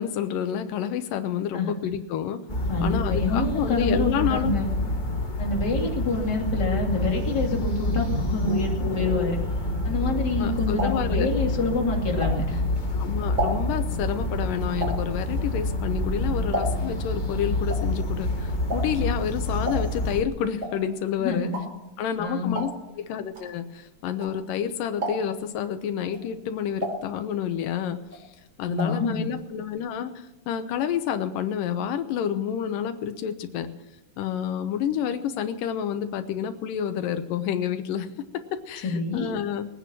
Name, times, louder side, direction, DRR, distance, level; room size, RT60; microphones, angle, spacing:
voice 1, 0.0-2.4 2.8-4.6 10.4-11.3 12.9-18.3 18.7-21.5 22.0-22.7 23.0-28.3 28.6-33.7 34.2-38.1 38.3-39.7, left 9 dB, 90° left, 8 dB, 2.7 m, -29 dB
sound 1, 2.5-20.2, left 1 dB, 55° left, 0.5 m, -27 dB
voice 2, 2.7-4.7 5.4-9.4 9.8-12.6 21.2-21.6 22.2-22.6 28.7-29.3 38.8-39.3, left 3 dB, 30° left, -1 dB, 3.1 m, -27 dB
sound 2, 10.8-12.8 13.1-17.1 17.3-24.6 24.9-25.5 26.0-27.7 28.0-29.1 29.3-29.4 29.7-29.8, right 1 dB, 35° right, 4.6 m, -34 dB
21.0 x 9.4 x 6.1 m, 0.97 s
omnidirectional pair, 3.8 m